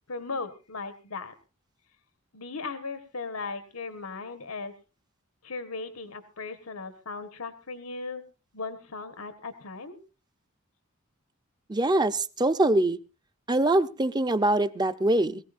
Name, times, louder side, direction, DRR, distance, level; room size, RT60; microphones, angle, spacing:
voice 1, 0.1-1.3 2.3-4.7 5.4-8.2 8.5-10.0, left 4 dB, 85° left, 9 dB, 1.5 m, -37 dB
voice 2, 11.7-13.0 13.5-15.4, right 1 dB, 20° right, 11 dB, 0.7 m, -23 dB
22.5 x 15.5 x 2.6 m, 0.32 s
head